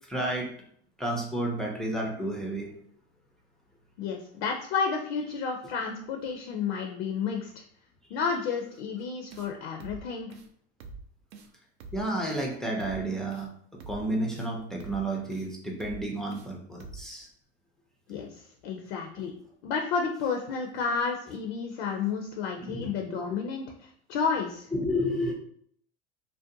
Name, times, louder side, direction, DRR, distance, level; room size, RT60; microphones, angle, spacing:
voice 1, 0.1-0.5 1.0-2.7 11.9-17.3 22.6-23.3 24.7-25.3, right 1 dB, ahead, -2 dB, 0.4 m, -31 dB
voice 2, 4.0-7.5 8.1-10.3 18.1-19.3 19.6-24.7, left 5 dB, 65° left, 2 dB, 0.5 m, -31 dB
sound 1, 9.3-9.5 9.8-10.0 10.3-10.5 10.8-11.0 11.3-11.5 11.8-12.0 12.3-12.5 12.8-13.0 13.3-13.5 13.8-14.0 14.3-14.5 14.8-15.0 15.3-15.5 15.8-16.0 16.3-16.5 16.8-17.0, right 4 dB, 75° right, 0.5 m, -44 dB
2.5 x 2.1 x 2.6 m, 0.63 s
hypercardioid pair, 105°, 34 cm